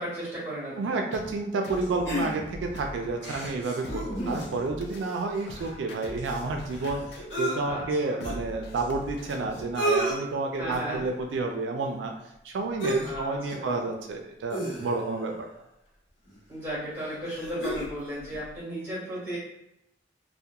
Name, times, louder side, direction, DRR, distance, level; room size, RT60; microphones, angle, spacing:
voice 1, 0.0-0.9 4.2-4.4 7.5-8.2 10.6-11.0 13.0-13.8 16.5-19.4, right 1 dB, 15° right, -9 dB, 1.4 m, -35 dB
voice 2, 0.8-12.1 12.4-15.5, right 3 dB, 90° right, 3 dB, 0.3 m, -30 dB
sound 1, 1.1-9.8, left 1 dB, 65° left, 0.3 m, -42 dB
sound 2, 2.0-2.7 3.2-4.7 5.0-5.1 5.3-7.6 8.2-8.3 9.2-9.3 9.5-10.2 10.7-11.0 12.8-13.2 13.5-13.7 14.5-15.2 16.3-16.4 16.9-17.9 18.3-18.4, right 1 dB, 85° left, 1.0 m, -32 dB
2.8 x 2.1 x 2.3 m, 0.83 s
head